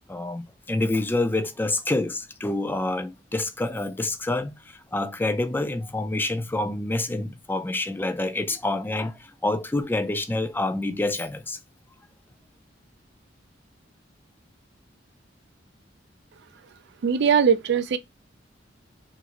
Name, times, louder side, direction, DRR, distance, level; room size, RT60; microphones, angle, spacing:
voice 1, 0.1-11.6, left 2 dB, 10° left, 0.4 m, -27 dB
voice 2, 17.0-18.0, right 7 dB, 65° right, 0.4 m, -20 dB
2.9 x 2.5 x 2.9 m
head